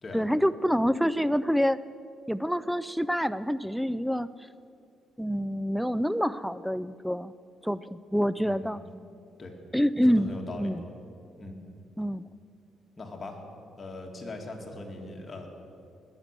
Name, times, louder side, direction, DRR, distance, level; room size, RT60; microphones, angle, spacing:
voice 1, 0.1-1.8 2.3-4.3 5.2-7.3 7.6-8.8 9.7-10.3 10.6-10.8 12.0-12.2, equal, ahead, 16 dB, 0.3 m, -26 dB
voice 2, 8.4-8.9 9.4-9.5 10.0-10.7 11.4-11.6 13.0-13.4 13.8-15.5, left 2 dB, 30° left, 1 dB, 2.3 m, -40 dB
20.0 x 7.3 x 6.7 m, 2.5 s
cardioid pair, 90°, 0 cm